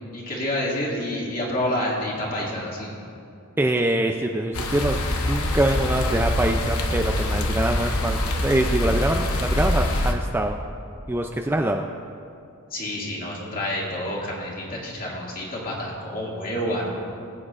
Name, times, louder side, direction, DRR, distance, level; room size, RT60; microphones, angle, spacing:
voice 1, 0.1-2.9 12.7-17.0, left 1 dB, 40° left, -4 dB, 2.2 m, -28 dB
voice 2, 3.6-10.6 11.1-11.9, right 1 dB, 10° right, 3 dB, 0.3 m, -24 dB
sound 1, 4.5-10.1, left 1 dB, 75° left, 1.0 m, -24 dB
20.5 x 8.6 x 2.5 m, 2.5 s
head